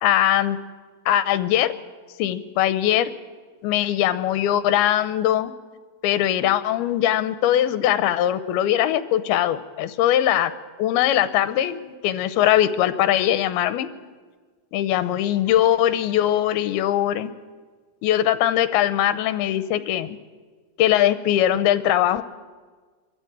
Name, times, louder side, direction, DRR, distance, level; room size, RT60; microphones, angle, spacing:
voice 1, 0.0-0.6 1.1-1.8 2.2-3.1 3.6-5.5 6.0-10.5 10.8-13.9 14.7-17.3 18.0-20.2 20.8-22.2, left 12 dB, 80° left, 13 dB, 2.7 m, -21 dB
24.5 x 14.0 x 8.9 m, 1.5 s
omnidirectional pair, 4.4 m